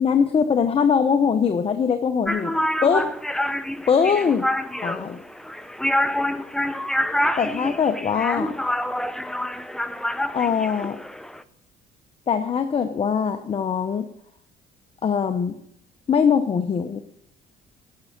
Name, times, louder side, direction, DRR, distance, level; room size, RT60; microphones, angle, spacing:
voice 1, 0.0-2.5 2.8-3.1 3.9-4.5 4.8-5.2 7.4-8.5 10.3-11.0 12.3-14.1 15.0-15.5 16.1-17.0, left 6 dB, 35° left, 8 dB, 0.9 m, -21 dB
sound 1, 2.2-11.4, left 1 dB, 5° left, 0.6 m, -27 dB
10.5 x 6.9 x 9.1 m, 0.73 s
cardioid pair, 110°, 17 cm